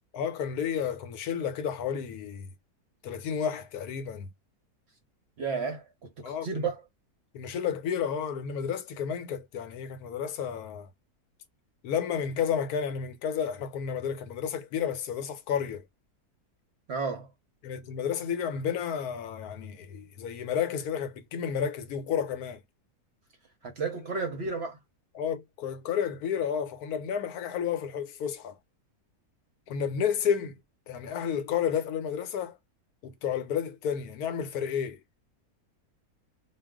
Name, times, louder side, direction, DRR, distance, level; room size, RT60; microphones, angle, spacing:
voice 1, 0.1-2.5 3.0-4.3 6.2-6.7 7.3-10.9 11.8-15.8 17.6-22.6 24.2-24.3 25.1-28.6 29.7-30.6 30.9-32.6 33.0-35.0, left 8 dB, 80° left, 1.1 m, -31 dB
voice 2, 5.4-6.8 16.9-17.3 23.6-24.8, right 4 dB, 55° right, 0.8 m, -32 dB
2.4 x 2.3 x 3.5 m
omnidirectional pair, 1.6 m